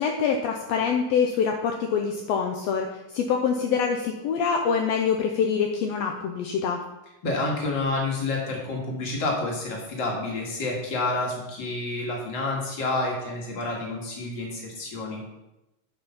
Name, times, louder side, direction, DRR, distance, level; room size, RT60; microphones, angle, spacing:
voice 1, 0.0-6.8, left 6 dB, 75° left, 3 dB, 1.6 m, -25 dB
voice 2, 7.2-15.2, left 2 dB, 40° left, -1 dB, 2.3 m, -29 dB
8.9 x 5.3 x 5.7 m, 0.98 s
omnidirectional pair, 3.6 m